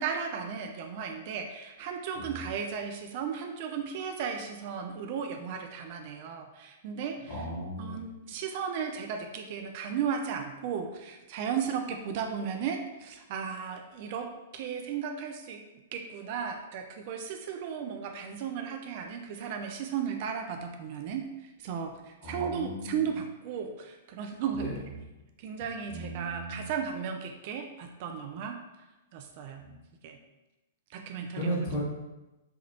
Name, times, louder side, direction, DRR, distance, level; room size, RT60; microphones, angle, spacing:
voice 1, 0.0-7.4 7.8-15.6 15.9-21.3 21.6-24.8 25.4-28.6 29.1-29.7 30.0-30.2 30.9-31.5, right 7 dB, 45° right, 4 dB, 0.3 m, -35 dB
voice 2, 2.1-2.5 7.2-8.0 22.2-23.1 24.5-24.8 25.9-26.7 29.6-29.8 31.4-31.8, right 1 dB, 40° left, -6 dB, 1.3 m, -36 dB
3.3 x 2.3 x 2.9 m, 1.0 s
figure-of-eight pair, 110°, 0 cm